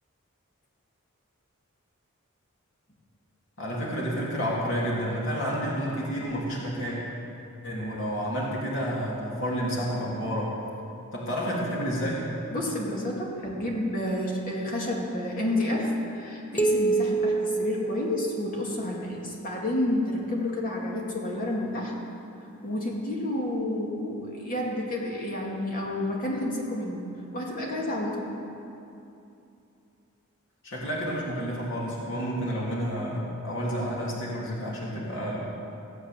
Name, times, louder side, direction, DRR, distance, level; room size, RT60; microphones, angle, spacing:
voice 1, 3.6-7.0 7.6-10.5 11.1-12.3 30.6-35.4, equal, 60° left, -5 dB, 3.0 m, -30 dB
voice 2, 12.5-21.9 22.6-27.1 27.3-28.3, left 1 dB, 40° left, -3 dB, 2.5 m, -30 dB
sound 1, 16.6-19.0, right 3 dB, 10° left, 0.7 m, -27 dB
17.5 x 8.1 x 7.6 m, 2.7 s
head